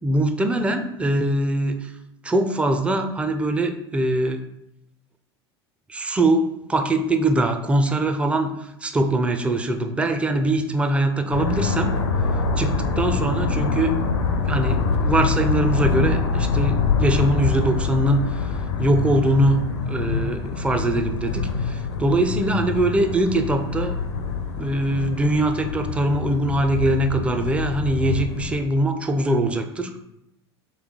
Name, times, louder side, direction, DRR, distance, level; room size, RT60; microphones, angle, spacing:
voice 1, 0.0-1.9 2.2-4.4 5.9-11.9 12.6-14.0 14.5-18.4 18.8-19.6 19.9-24.0 24.6-30.0, right 1 dB, 10° right, 6 dB, 0.4 m, -22 dB
sound 1, 11.3-28.6, left 4 dB, 75° left, 0.5 m, -25 dB
3.2 x 3.1 x 3.8 m, 0.83 s
figure-of-eight pair, 75°, 14 cm